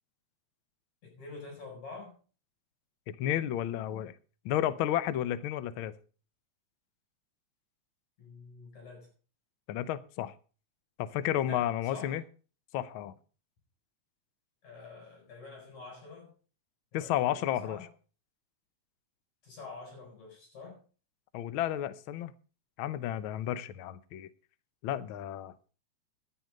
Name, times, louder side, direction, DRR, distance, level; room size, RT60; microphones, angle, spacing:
voice 1, 1.0-2.1 8.2-9.1 11.4-12.2 14.6-16.3 16.9-17.9 19.4-20.8, left 3 dB, 70° left, 0 dB, 8.4 m, -47 dB
voice 2, 3.1-4.1 4.4-5.9 9.7-10.3 11.0-12.2 12.7-13.1 16.9-17.9 21.3-22.3 22.8-24.3 24.8-25.5, left 12 dB, 90° left, 15 dB, 1.1 m, -32 dB
11.0 x 9.9 x 5.2 m, 0.37 s
omnidirectional pair, 3.3 m